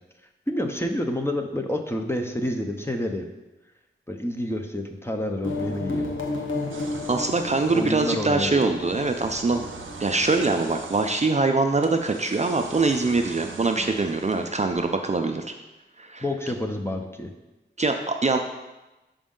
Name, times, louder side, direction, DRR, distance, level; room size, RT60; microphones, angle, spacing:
voice 1, 0.5-3.3 4.1-6.1 7.7-8.7 16.2-17.3, left 1 dB, 10° left, 3 dB, 0.6 m, -28 dB
sound 1, 5.4-10.8, left 2 dB, 90° left, 0.8 m, -33 dB
sound 2, 6.7-15.0, right 4 dB, 90° right, 0.5 m, -43 dB
voice 2, 7.1-9.6 10.0-15.4 16.0-16.2 17.8-18.4, right 3 dB, 35° right, 5 dB, 0.4 m, -23 dB
5.2 x 5.1 x 3.7 m, 1.0 s
wide cardioid pair, 55°, 20 cm